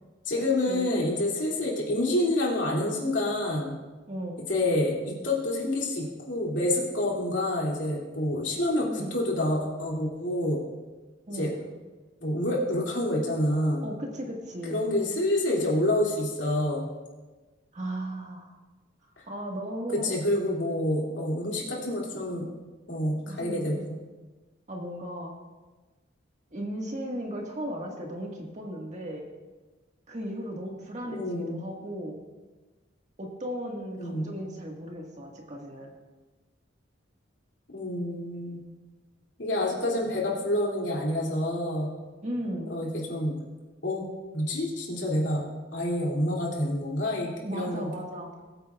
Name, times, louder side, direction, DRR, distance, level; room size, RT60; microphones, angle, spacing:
voice 1, 0.2-3.8 4.5-10.6 11.3-11.5 12.2-13.8 14.7-16.9 19.2-19.3 19.9-22.4 22.9-23.9 31.1-31.6 34.0-34.3 37.7-38.6 39.4-41.9 42.7-43.4 43.8-44.1 44.3-45.4 45.7-47.9, left 1 dB, 70° left, -3 dB, 2.8 m, -28 dB
voice 2, 4.1-4.4 8.9-9.2 11.3-11.5 13.8-14.9 17.7-18.5 19.3-20.2 23.3-23.8 24.7-25.3 26.5-29.3 30.1-32.2 33.2-35.9 42.2-42.8 47.4-48.3, equal, 40° right, 0 dB, 1.8 m, -36 dB
21.0 x 8.9 x 2.4 m, 1.2 s
head